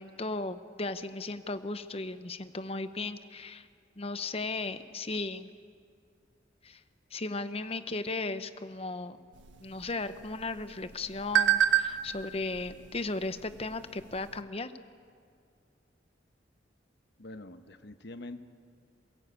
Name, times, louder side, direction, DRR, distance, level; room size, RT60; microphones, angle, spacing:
voice 1, 0.0-3.7 4.0-5.5 6.6-6.8 7.1-9.2 9.6-14.7, left 3 dB, 30° left, 11 dB, 0.9 m, -36 dB
sound 1, 9.3-14.4, right 11 dB, 85° right, 1.5 m, -32 dB
voice 2, 17.2-18.4, left 2 dB, 60° left, 8 dB, 1.2 m, -44 dB
27.5 x 16.5 x 8.4 m, 2.2 s
head